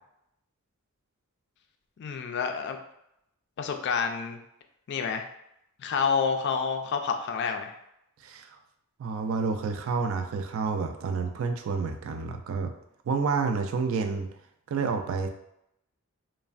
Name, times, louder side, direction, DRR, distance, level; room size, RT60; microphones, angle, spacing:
voice 1, 2.0-2.8 3.6-4.4 4.9-5.3 5.8-7.7, left 6 dB, 50° left, 5 dB, 0.3 m, -28 dB
voice 2, 9.0-12.7 13.1-14.3 14.7-15.3, right 5 dB, 65° right, 6 dB, 0.3 m, -29 dB
3.1 x 2.1 x 2.4 m, 0.79 s
head